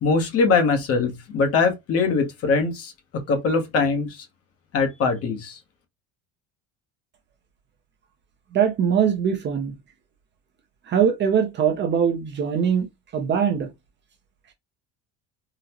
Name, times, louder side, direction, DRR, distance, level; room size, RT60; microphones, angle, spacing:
voice 1, 0.0-2.9 3.3-4.3 4.7-5.6, left 4 dB, 40° left, 0.8 m, -22 dB
voice 2, 8.5-9.7 10.9-12.9 13.1-13.7, right 7 dB, 30° right, 0.5 m, -22 dB
3.8 x 2.0 x 2.8 m
cardioid pair, 145°, 37 cm